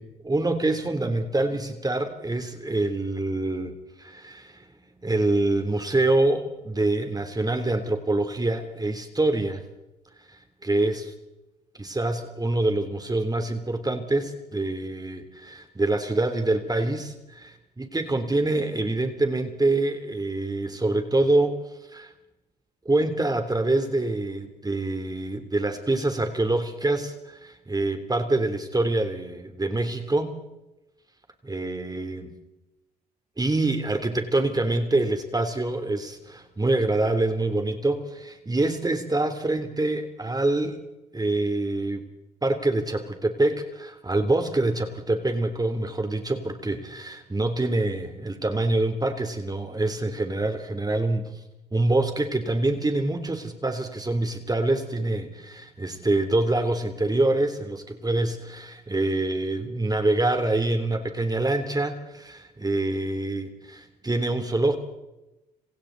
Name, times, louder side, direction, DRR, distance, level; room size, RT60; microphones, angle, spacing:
voice 1, 0.0-3.7 4.0-4.7 5.0-9.6 10.2-11.0 11.7-21.6 21.9-22.1 22.8-30.3 31.4-32.3 33.4-40.8 41.1-42.0 42.4-51.3 51.7-64.8, right 2 dB, 20° right, 7 dB, 3.3 m, -25 dB
28.5 x 26.5 x 4.1 m, 0.98 s
hypercardioid pair, 50°, 21 cm